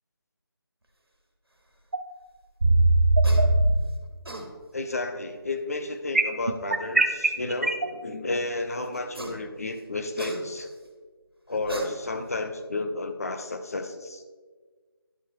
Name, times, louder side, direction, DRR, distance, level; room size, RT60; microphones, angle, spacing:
sound 1, 1.9-2.0 2.6-3.6 6.1-7.9, right 2 dB, 35° right, 0.4 m, -19 dB
sound 2, 3.2-3.4 4.0-4.5 5.9-6.0 8.9-9.4 9.8-10.8 11.5-12.3, right 2 dB, 75° right, 1.6 m, -36 dB
voice 1, 4.7-10.7 11.5-14.2, left 2 dB, 40° left, 7 dB, 0.6 m, -32 dB
11.0 x 5.4 x 3.2 m, 1.5 s
figure-of-eight pair, 160°, 13 cm